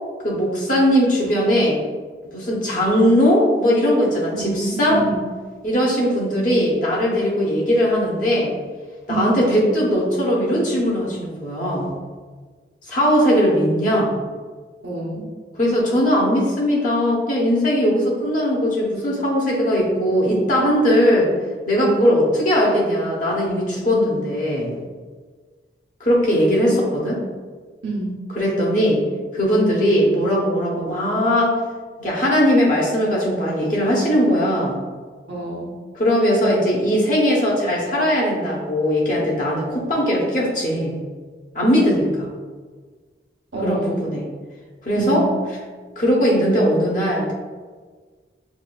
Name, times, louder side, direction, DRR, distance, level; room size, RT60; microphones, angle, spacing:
voice 1, 0.2-1.8 2.3-5.0 5.6-8.5 9.1-11.9 12.9-14.1 15.6-21.3 21.7-24.7 26.0-27.2 28.3-29.0 29.3-31.6 32.0-34.8 35.9-41.0 41.5-42.3 43.6-44.2 44.8-45.3 46.0-47.3, equal, 45° left, -4 dB, 0.9 m, -19 dB
voice 2, 4.3-5.2 9.1-9.4 14.8-15.3 21.8-21.9 27.8-28.2 35.3-35.7 43.5-44.1 44.9-45.4, right 2 dB, 85° right, -3 dB, 0.9 m, -27 dB
7.0 x 2.5 x 2.3 m, 1.5 s
head